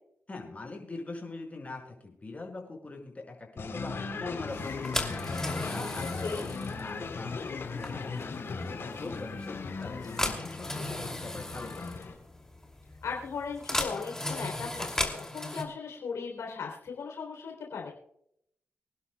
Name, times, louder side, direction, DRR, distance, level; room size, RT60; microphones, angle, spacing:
voice 1, 0.3-11.8, left 3 dB, 30° left, 1 dB, 5.5 m, -43 dB
sound 1, 3.6-12.1, left 4 dB, 60° left, 3.4 m, -37 dB
sound 2, 4.5-15.6, left 1 dB, 10° left, 2.6 m, -37 dB
voice 2, 13.0-17.9, left 5 dB, 85° left, 0 dB, 3.3 m, -37 dB
25.5 x 11.0 x 2.3 m, 0.72 s
cardioid pair, 75°, 5 cm